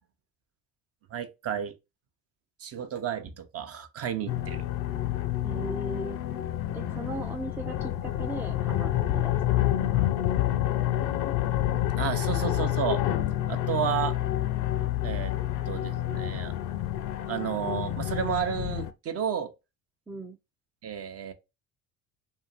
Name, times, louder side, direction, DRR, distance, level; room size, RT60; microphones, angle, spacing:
voice 1, 1.1-1.7 2.6-4.6 12.0-13.0 13.5-14.1 15.0-15.3 15.7-16.5 17.3-19.5 20.8-21.3, right 8 dB, 40° right, 0.7 m, -31 dB
sound 1, 4.3-18.9, left 13 dB, 55° left, 0.5 m, -28 dB
voice 2, 5.4-6.2 6.7-10.1 20.1-20.4, right 1 dB, 5° right, 0.4 m, -38 dB
2.8 x 2.7 x 2.4 m
hypercardioid pair, 75°, 38 cm